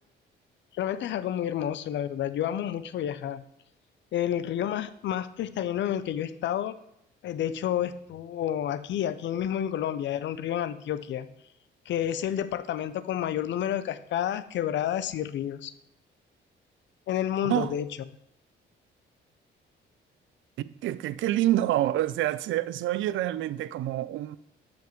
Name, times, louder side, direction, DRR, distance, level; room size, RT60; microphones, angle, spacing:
voice 1, 0.8-3.4 4.1-6.8 7.2-11.3 11.9-15.7 17.1-17.9, left 10 dB, 65° left, 0.6 m, -30 dB
voice 2, 20.6-24.4, right 14 dB, 75° right, 0.4 m, -27 dB
12.0 x 5.2 x 3.1 m
cardioid pair, 90°, 20 cm